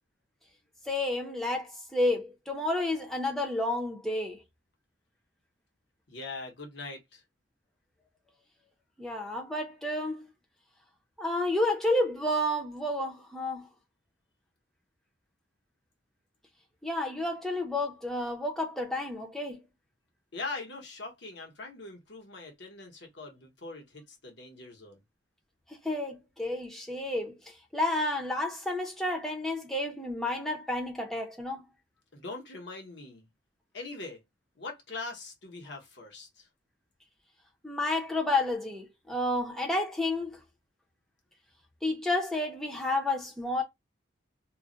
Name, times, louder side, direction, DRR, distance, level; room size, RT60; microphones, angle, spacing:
voice 1, 0.9-4.4 9.0-10.3 11.2-13.7 16.8-19.6 25.7-31.6 37.6-40.4 41.8-43.6, left 1 dB, ahead, 0.6 m, -30 dB
voice 2, 6.1-7.2 20.3-25.0 32.1-33.3 33.7-34.2 34.6-36.5, left 3 dB, 60° left, 1.0 m, -42 dB
2.4 x 2.1 x 3.7 m
head